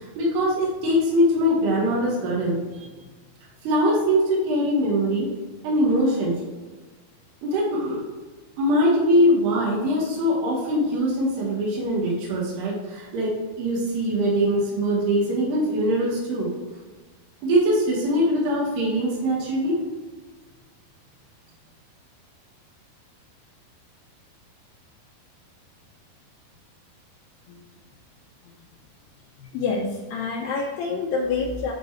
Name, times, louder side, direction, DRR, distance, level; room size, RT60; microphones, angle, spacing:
voice 1, 0.2-2.9 3.7-5.3 5.6-6.4 7.4-8.0 8.6-13.3 13.6-16.5 17.4-19.8, equal, 90° right, -5 dB, 3.5 m, -22 dB
voice 2, 29.4-31.7, left 4 dB, 80° left, -2 dB, 2.2 m, -27 dB
11.0 x 3.8 x 3.1 m, 1.3 s
omnidirectional pair, 4.5 m